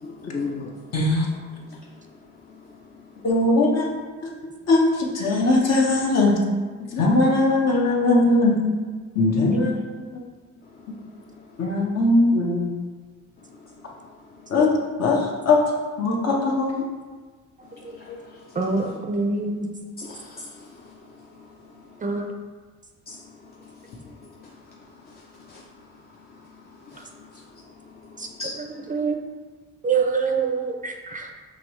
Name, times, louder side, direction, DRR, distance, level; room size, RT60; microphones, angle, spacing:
voice 1, 0.0-0.7 18.0-18.2 18.5-18.9 20.0-20.4 23.1-23.2 25.5-25.6 28.4-28.5, left 4 dB, 30° left, -1 dB, 0.5 m, -34 dB
voice 2, 0.9-1.3 3.2-3.9 4.7-6.4 6.9-8.6 9.2-9.8 11.6-12.7 14.5-14.7 15.0-15.2 15.5-15.6 16.0-16.8, left 2 dB, 55° left, -1 dB, 1.0 m, -19 dB
voice 3, 18.6-19.7 22.0-22.3 28.2-29.2 29.8-31.3, right 4 dB, 25° right, 3 dB, 0.5 m, -25 dB
5.4 x 3.1 x 3.1 m, 1.4 s
cardioid pair, 90°, 30 cm